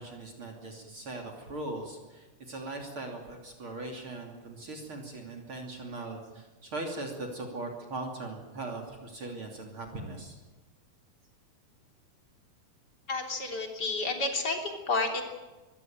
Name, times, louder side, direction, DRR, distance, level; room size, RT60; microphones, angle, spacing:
voice 1, 0.0-10.3, right 2 dB, 40° right, 2 dB, 3.4 m, -40 dB
voice 2, 13.1-15.2, left 3 dB, 30° left, 3 dB, 3.6 m, -30 dB
24.0 x 16.5 x 9.2 m, 1.2 s
omnidirectional pair, 3.8 m